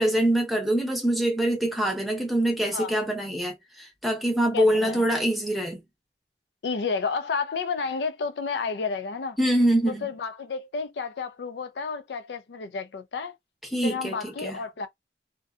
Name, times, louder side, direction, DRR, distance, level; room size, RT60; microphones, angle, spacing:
voice 1, 0.0-5.8 9.4-10.1 13.7-14.6, right 1 dB, ahead, 0.7 m, -24 dB
voice 2, 4.5-5.0 6.6-9.4 10.0-13.3 13.8-14.9, left 5 dB, 75° left, 0.4 m, -31 dB
2.6 x 2.2 x 2.3 m
head